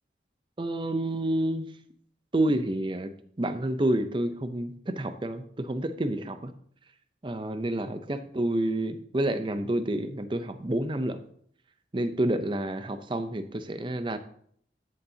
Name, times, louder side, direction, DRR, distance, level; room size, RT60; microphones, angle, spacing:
voice 1, 0.6-1.7 2.3-3.1 3.4-6.5 7.2-11.2 11.9-14.2, right 1 dB, 25° right, 10 dB, 0.6 m, -29 dB
13.5 x 6.9 x 2.8 m, 0.63 s
head